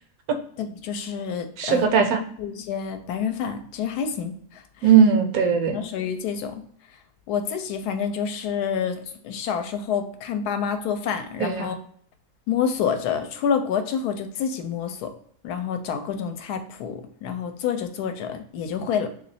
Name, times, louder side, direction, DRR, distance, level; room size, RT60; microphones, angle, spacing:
voice 1, 0.6-1.8 2.4-4.9 5.7-6.6 7.3-11.8 12.5-15.1 15.4-19.1, left 7 dB, 75° left, 7 dB, 1.1 m, -28 dB
voice 2, 1.6-2.2 4.8-5.8 11.4-11.7, right 7 dB, 70° right, 5 dB, 1.0 m, -19 dB
3.0 x 2.7 x 4.0 m, 0.63 s
omnidirectional pair, 1.7 m